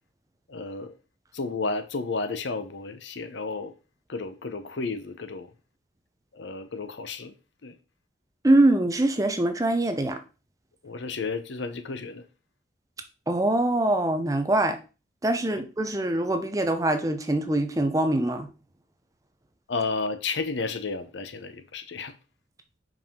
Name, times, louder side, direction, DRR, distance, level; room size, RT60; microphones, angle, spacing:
voice 1, 0.5-0.9 1.3-3.7 4.1-5.5 6.3-7.3 7.6-7.7 10.8-12.2 15.5-15.6 19.7-22.1, left 4 dB, 80° left, 0.7 m, -32 dB
voice 2, 8.4-10.2 13.3-14.8 15.2-18.5, right 1 dB, 20° right, 0.6 m, -23 dB
5.5 x 4.9 x 3.6 m
head